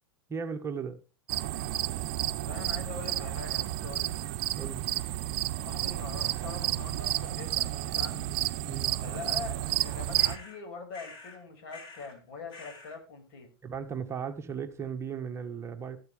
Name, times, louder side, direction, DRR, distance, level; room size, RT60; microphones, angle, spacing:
voice 1, 0.3-1.0 4.5-4.8 8.7-8.9 13.6-16.0, right 6 dB, 20° right, 1.5 m, -36 dB
sound 1, 1.3-10.4, right 14 dB, 50° right, 0.9 m, -31 dB
voice 2, 2.5-4.1 5.6-8.3 9.0-13.5, left 4 dB, 55° left, 5.8 m, -43 dB
sound 2, 10.1-10.6 10.9-11.4 11.7-12.2 12.5-13.0, left 4 dB, 40° left, 4.5 m, -48 dB
13.0 x 13.0 x 3.5 m
figure-of-eight pair, 90°, 13 cm